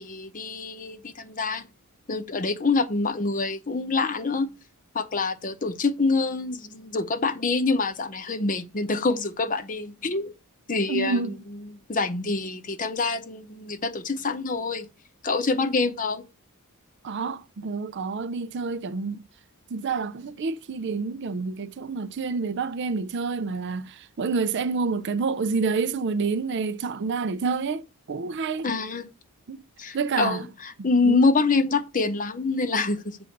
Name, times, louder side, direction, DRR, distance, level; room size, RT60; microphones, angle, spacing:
voice 1, 0.0-1.6 2.1-4.5 4.9-10.3 10.7-14.9 15.2-16.2 28.6-29.1 29.8-33.2, left 3 dB, 35° left, 0.8 m, -26 dB
voice 2, 10.9-11.4 17.0-19.2 19.7-28.7 29.5-29.6 29.9-30.5 31.0-31.2, right 4 dB, 50° right, 0.4 m, -28 dB
7.8 x 3.9 x 6.5 m
head